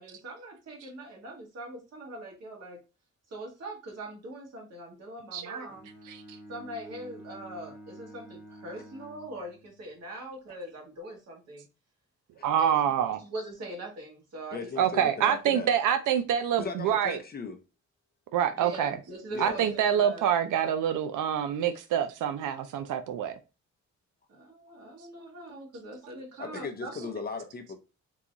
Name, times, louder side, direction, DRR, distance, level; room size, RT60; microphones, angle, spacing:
voice 1, 0.0-2.8 3.3-5.9 6.5-11.7 12.6-15.0 18.5-20.3 24.3-27.1, right 1 dB, 55° right, 1.7 m, -42 dB
voice 2, 5.3-5.6 6.1-6.2 12.4-13.2 14.8-17.2 18.3-19.0 19.4-23.4, right 9 dB, 90° right, 0.5 m, -26 dB
Bowed string instrument, 5.7-9.9, right 1 dB, ahead, 1.4 m, -49 dB
voice 3, 14.5-15.7 16.6-17.6 19.3-19.7 26.4-27.8, left 4 dB, 30° left, 0.6 m, -37 dB
3.8 x 2.9 x 2.4 m
wide cardioid pair, 155°, 30 cm